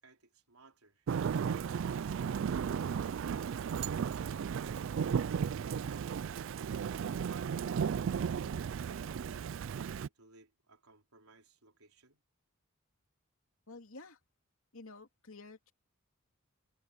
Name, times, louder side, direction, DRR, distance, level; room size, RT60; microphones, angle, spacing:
voice 1, 0.0-1.1 4.1-7.8 8.7-12.2, right 3 dB, 90° right, 4.2 m, -60 dB
Thunder / Rain, 1.1-10.1, right 7 dB, 60° right, 0.3 m, -35 dB
voice 2, 13.7-14.2 14.7-15.7, left 3 dB, 70° left, 2.8 m, -51 dB
head